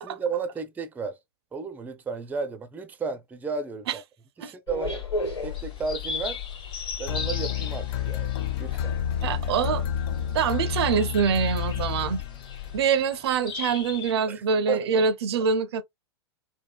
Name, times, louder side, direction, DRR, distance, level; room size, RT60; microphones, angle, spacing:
voice 1, 0.0-1.2 1.5-4.0 4.4-5.0 5.4-6.4 7.0-8.3 8.6-9.0 14.3-15.0, right 5 dB, 10° right, 0.4 m, -33 dB
sound 1, 4.7-12.8, left 6 dB, 80° left, 1.5 m, -36 dB
sound 2, 5.2-14.1, left 5 dB, 30° left, 1.2 m, -39 dB
sound 3, 7.1-12.7, left 9 dB, 65° left, 0.5 m, -30 dB
voice 2, 9.2-9.8 10.3-12.2 12.7-15.8, right 6 dB, 70° right, 0.4 m, -25 dB
3.6 x 2.1 x 2.2 m
hypercardioid pair, 100°, 14 cm